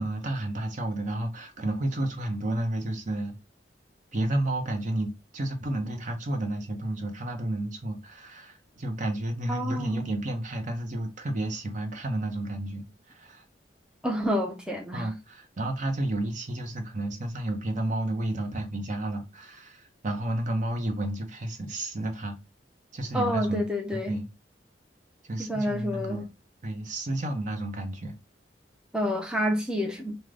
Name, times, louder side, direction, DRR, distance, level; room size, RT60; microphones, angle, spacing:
voice 1, 0.0-3.4 4.1-13.4 14.9-22.4 22.9-23.6 23.9-24.3 25.2-26.3 26.6-28.2, right 1 dB, 45° right, 0.7 m, -31 dB
voice 2, 9.5-10.2 14.0-15.1 23.1-24.2 25.4-26.3 28.9-30.2, equal, 5° right, 0.4 m, -29 dB
3.7 x 2.1 x 3.3 m
head